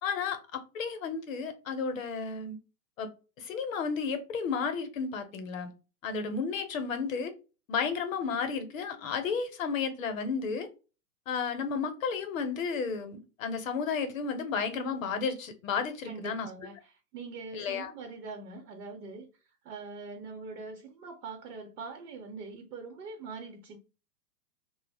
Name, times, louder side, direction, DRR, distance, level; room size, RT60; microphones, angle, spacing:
voice 1, 0.0-2.6 3.0-3.1 3.4-5.7 6.0-7.3 7.7-10.7 11.3-16.5 17.5-17.9, left 5 dB, 55° left, 0.6 m, -32 dB
voice 2, 16.0-19.3 19.6-23.8, right 4 dB, 70° right, 0.8 m, -43 dB
2.2 x 2.0 x 3.3 m
hypercardioid pair, 170°, 47 cm